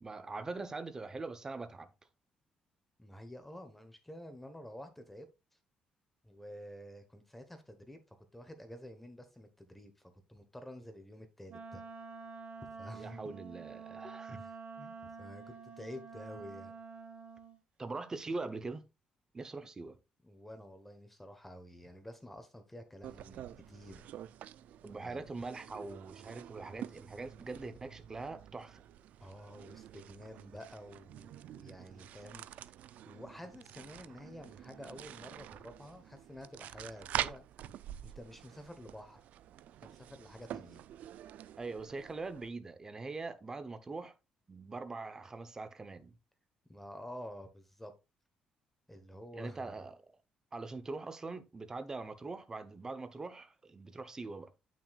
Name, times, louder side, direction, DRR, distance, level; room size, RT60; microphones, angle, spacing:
voice 1, 0.0-1.9 12.9-14.4 17.8-18.8 19.3-20.0 24.8-28.8 41.6-44.1 44.5-46.1 49.3-50.0 50.5-54.5, right 3 dB, 20° right, 0.9 m, -42 dB
voice 2, 3.0-5.3 6.2-11.8 12.8-13.2 14.0-16.7 20.2-24.1 25.0-25.2 29.2-32.5 32.8-37.4 38.0-39.2 39.8-40.8 46.7-47.9 48.9-49.8, equal, 5° left, 1.2 m, -50 dB
Wind instrument woodwind instrument, 11.5-17.6, right 5 dB, 50° right, 1.3 m, -48 dB
sound 1, 23.0-42.5, right 11 dB, 75° right, 0.4 m, -46 dB
8.7 x 6.2 x 2.4 m
cardioid pair, 120°, 3 cm